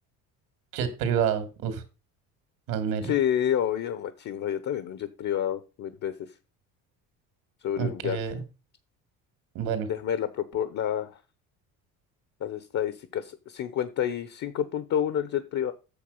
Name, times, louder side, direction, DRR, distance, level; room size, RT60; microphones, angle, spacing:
voice 1, 0.7-1.8 2.7-3.1 7.8-8.4 9.5-9.9, right 7 dB, 80° right, 9 dB, 2.6 m, -28 dB
voice 2, 3.0-6.3 7.6-8.2 9.9-11.2 12.4-15.7, left 9 dB, 50° left, 13 dB, 1.1 m, -29 dB
8.5 x 6.6 x 5.5 m, 0.32 s
supercardioid pair, 90°, 36 cm